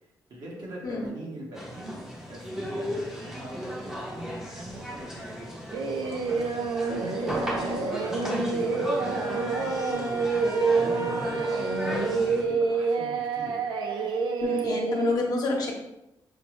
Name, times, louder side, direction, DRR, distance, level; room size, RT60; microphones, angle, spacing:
voice 1, 0.3-13.7, right 1 dB, 65° right, -4 dB, 1.3 m, -42 dB
sound 1, 1.6-12.4, equal, 5° right, 0.7 m, -36 dB
Singing, 5.7-15.1, right 4 dB, 85° right, 0.4 m, -28 dB
Wind instrument woodwind instrument, 8.8-13.2, right 3 dB, 40° right, 0.7 m, -33 dB
voice 2, 14.4-15.7, left 3 dB, 60° left, 0 dB, 0.8 m, -28 dB
5.5 x 2.0 x 3.1 m, 0.90 s
cardioid pair, 125°, 8 cm